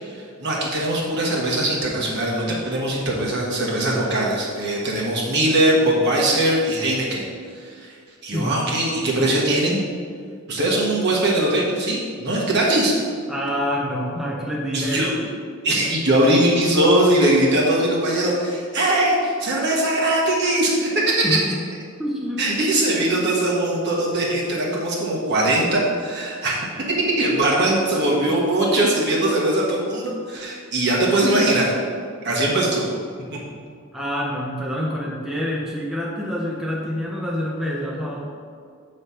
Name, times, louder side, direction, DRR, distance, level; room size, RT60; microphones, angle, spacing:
voice 1, 0.0-7.2 7.5-7.9 8.2-9.8 10.5-12.9 14.7-15.1 15.6-21.4 22.4-26.5 27.2-31.7 32.2-32.8, right 1 dB, 55° right, -4 dB, 1.4 m, -21 dB
voice 2, 8.3-8.7 13.3-15.2 21.2-21.6 22.0-22.5 33.9-38.3, equal, ahead, -4 dB, 0.6 m, -27 dB
7.9 x 3.3 x 5.6 m, 2.1 s
head